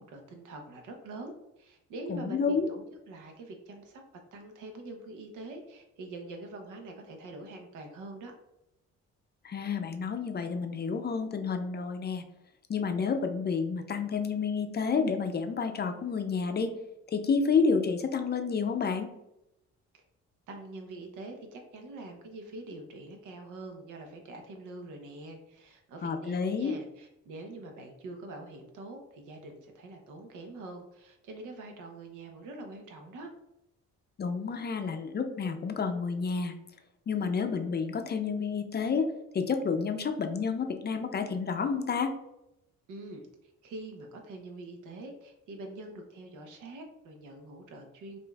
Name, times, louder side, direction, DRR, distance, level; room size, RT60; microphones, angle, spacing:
voice 1, 0.0-4.0 4.3-8.3 19.9-20.0 20.5-33.3 42.9-48.2, right 2 dB, 85° right, 3 dB, 0.8 m, -44 dB
voice 2, 2.1-2.7 9.4-12.2 12.7-16.7 17.1-19.1 26.0-26.7 34.2-36.5 37.1-39.1 39.3-42.1, left 5 dB, 35° left, 6 dB, 0.5 m, -30 dB
5.0 x 2.5 x 2.3 m, 0.87 s
cardioid pair, 90°, 30 cm